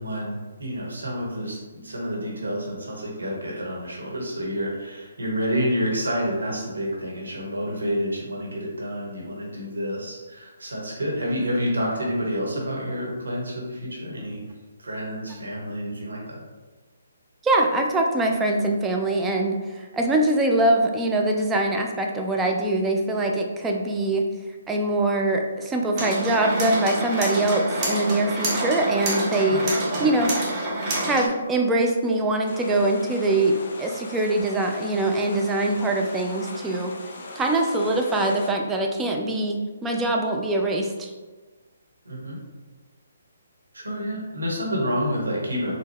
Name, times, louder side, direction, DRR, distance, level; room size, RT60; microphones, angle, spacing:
voice 1, 0.0-14.4 14.8-16.4 29.5-29.6 30.0-30.1 42.0-42.4 43.7-45.8, equal, 75° right, -3 dB, 1.3 m, -29 dB
voice 2, 17.4-24.3 24.7-29.6 30.0-30.3 31.0-37.0 37.4-41.1, right 2 dB, 10° right, 1 dB, 0.4 m, -23 dB
sound 1, 26.0-31.3, right 1 dB, 25° right, 0.9 m, -27 dB
sound 2, 32.5-38.5, left 3 dB, 50° left, 0.5 m, -40 dB
4.1 x 2.2 x 3.3 m, 1.3 s
figure-of-eight pair, 140°, 0 cm